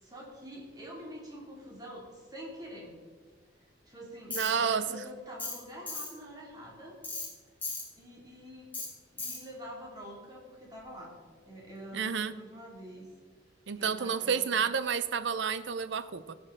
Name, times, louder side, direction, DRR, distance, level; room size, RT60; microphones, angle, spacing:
voice 1, 0.0-2.9 3.9-7.0 7.9-8.7 9.1-11.1 11.5-13.0 13.8-14.5, equal, 20° right, -3 dB, 2.5 m, -46 dB
Tools, 4.3-4.5 5.4-5.6 5.9-6.1 7.0-7.3 7.6-7.8 8.7-8.9 9.2-9.4, left 3 dB, 10° left, 2.7 m, -36 dB
voice 2, 4.3-5.0 11.9-12.3 13.7-16.3, right 6 dB, 70° right, 14 dB, 0.5 m, -30 dB
17.0 x 6.7 x 3.7 m, 1.5 s
head